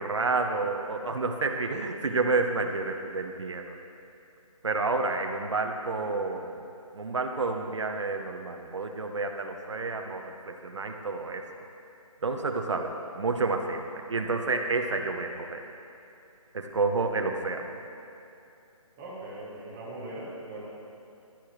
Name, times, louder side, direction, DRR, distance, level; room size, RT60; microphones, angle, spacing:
voice 1, 0.0-3.6 4.6-6.5 6.9-11.4 12.2-15.6 16.5-17.8, right 3 dB, 55° right, 4 dB, 1.0 m, -29 dB
voice 2, 19.0-20.6, right 1 dB, 10° right, -8 dB, 1.1 m, -40 dB
15.0 x 10.5 x 3.2 m, 2.8 s
hypercardioid pair, 175°, 18 cm